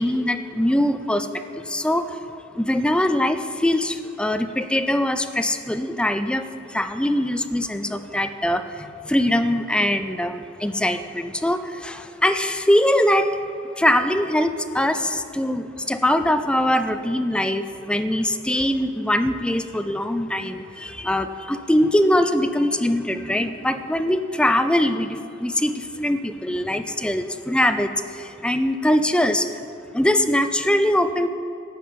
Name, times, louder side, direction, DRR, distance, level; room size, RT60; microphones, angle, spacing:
voice 1, 0.0-2.1 2.5-13.3 13.8-29.5 29.9-31.3, left 1 dB, 5° left, 9 dB, 0.4 m, -22 dB
11.5 x 5.6 x 8.6 m, 2.6 s
head